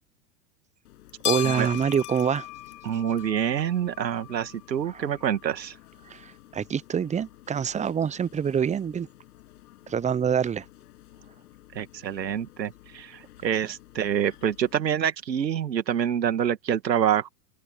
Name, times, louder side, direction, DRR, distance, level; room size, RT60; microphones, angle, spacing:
sound 1, 0.9-14.7, left 15 dB, 65° left, 7.1 m, -41 dB
voice 1, 1.2-2.5 4.9-5.0 6.0-9.1 9.9-10.7, right 7 dB, 15° right, 0.8 m, -26 dB
voice 2, 2.8-5.8 11.7-17.3, right 9 dB, 80° right, 2.3 m, -26 dB
open air
hypercardioid pair, 95°, 50 cm